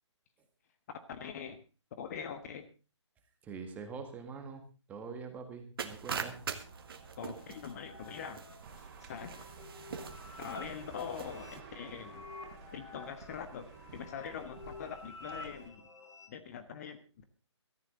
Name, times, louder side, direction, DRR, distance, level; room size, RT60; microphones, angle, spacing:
voice 1, 1.1-1.6 2.0-2.7 7.2-8.4 8.8-9.4 10.4-12.3 12.7-15.8 16.3-17.2, left 7 dB, 35° left, 10 dB, 1.3 m, -43 dB
voice 2, 3.4-4.6 4.9-6.4, right 5 dB, 10° right, 6 dB, 1.9 m, -44 dB
sound 1, 5.8-11.6, right 6 dB, 50° right, 1.9 m, -43 dB
sound 2, 6.0-16.3, left 3 dB, 80° left, 6.0 m, -52 dB
sound 3, 8.6-15.7, right 5 dB, 30° right, 3.8 m, -52 dB
17.5 x 14.0 x 3.9 m, 0.32 s
figure-of-eight pair, 150°, 15 cm